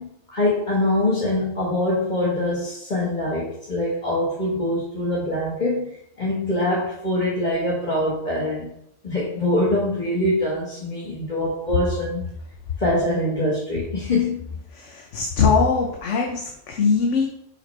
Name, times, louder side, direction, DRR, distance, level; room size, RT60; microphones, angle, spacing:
voice 1, 0.0-8.7 9.0-12.2 12.8-14.4, left 1 dB, 40° left, -6 dB, 1.7 m, -24 dB
voice 2, 14.7-17.3, left 5 dB, 75° left, 1 dB, 1.2 m, -21 dB
6.1 x 5.7 x 4.3 m, 0.74 s
omnidirectional pair, 1.2 m